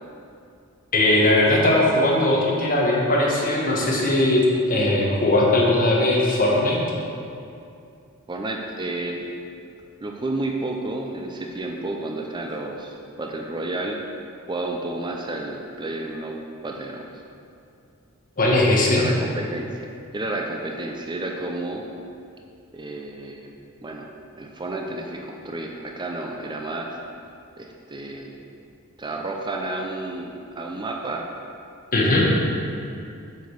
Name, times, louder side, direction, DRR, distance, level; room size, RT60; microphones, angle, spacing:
voice 1, 0.9-6.8 18.4-19.0 31.9-32.3, left 1 dB, 40° left, -3 dB, 1.6 m, -19 dB
voice 2, 8.3-9.2 10.0-14.0 14.5-17.2 18.8-21.9 22.7-23.5 23.8-24.1 24.4-27.0 27.6-28.3 29.0-31.2 31.9-32.5, right 2 dB, 20° right, 1 dB, 0.6 m, -31 dB
7.7 x 5.2 x 6.5 m, 2.5 s
head